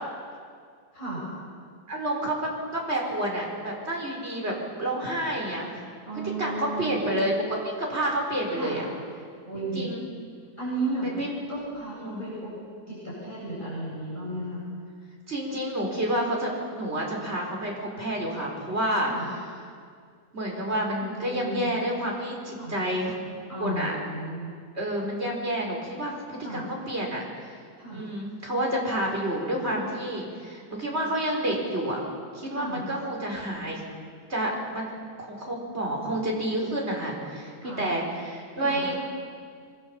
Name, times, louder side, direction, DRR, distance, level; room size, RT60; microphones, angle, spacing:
voice 1, 0.9-1.2 6.1-7.5 8.6-8.8 9.4-9.9 10.6-11.1 11.5-12.5 12.9-14.6 19.1-19.3 21.0-21.6 22.6-22.7 23.5-24.5 26.4-26.6 27.8-28.0 32.5-32.8 37.6-37.8 38.6-38.8, right 2 dB, 25° left, -9 dB, 8.4 m, -34 dB
voice 2, 1.9-2.4 2.7-5.8 6.4-7.4 7.8-8.8 9.5-10.0 11.0-11.3 11.9-12.2 15.3-19.1 20.3-23.2 23.6-23.9 24.7-27.5 27.9-32.0 32.3-33.8 34.3-34.9 35.2-38.9, right 1 dB, 40° right, -1 dB, 4.9 m, -29 dB
25.5 x 22.5 x 7.2 m, 2.1 s
omnidirectional pair, 1.8 m